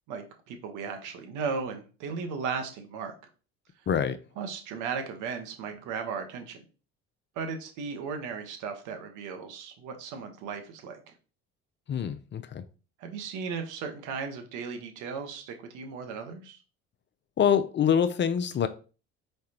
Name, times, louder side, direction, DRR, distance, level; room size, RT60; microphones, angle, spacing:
voice 1, 0.1-3.1 4.4-6.6 7.3-11.1 13.0-16.6, right 5 dB, 70° right, 5 dB, 1.1 m, -36 dB
voice 2, 3.9-4.2 11.9-12.6 17.4-18.7, left 8 dB, 35° left, 11 dB, 0.5 m, -25 dB
4.7 x 3.3 x 2.9 m, 0.34 s
hypercardioid pair, 65°, 32 cm